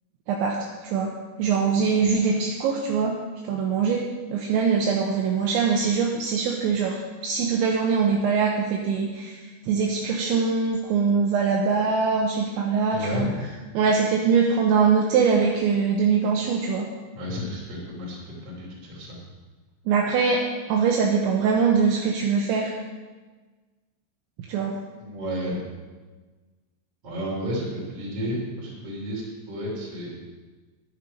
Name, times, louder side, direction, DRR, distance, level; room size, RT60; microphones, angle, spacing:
voice 1, 0.3-3.2 3.5-4.0 4.3-9.4 9.7-13.3 13.7-16.9 19.9-22.7 24.5-24.8, right 5 dB, 75° right, 0 dB, 3.0 m, -23 dB
voice 2, 12.9-13.3 17.1-19.2 25.0-25.6 27.0-30.1, equal, 35° right, -3 dB, 3.5 m, -32 dB
10.5 x 10.0 x 5.2 m, 1.3 s
omnidirectional pair, 5.7 m